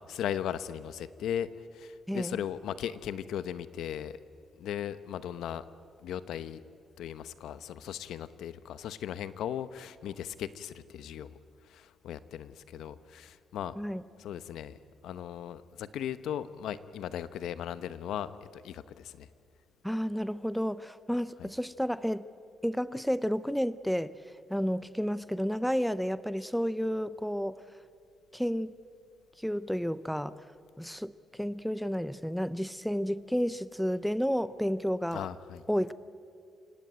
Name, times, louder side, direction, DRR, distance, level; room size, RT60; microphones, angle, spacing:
voice 1, 0.1-4.2 4.6-5.7 6.0-6.6 7.0-11.3 11.7-13.8 14.2-14.8 15.0-19.3 35.1-35.6, left 10 dB, 90° left, 14 dB, 0.9 m, -37 dB
voice 2, 2.1-2.4 13.8-14.0 19.8-22.3 22.6-27.6 28.3-28.7 29.4-30.5 30.8-35.3 35.7-35.9, equal, ahead, 16 dB, 0.5 m, -31 dB
28.0 x 17.5 x 8.7 m, 2.4 s
cardioid pair, 150°, 0 cm